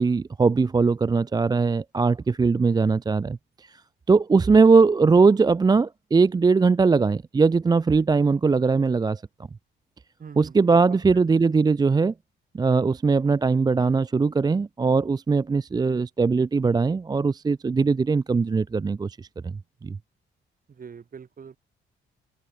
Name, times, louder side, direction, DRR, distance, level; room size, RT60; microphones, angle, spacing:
voice 1, 0.0-3.8 4.1-9.2 10.4-12.1 12.5-20.0, right 4 dB, 20° right, 0.4 m, -20 dB
voice 2, 10.2-11.2 20.7-21.6, right 6 dB, 45° right, 7.1 m, -44 dB
cardioid pair, 90°, 20 cm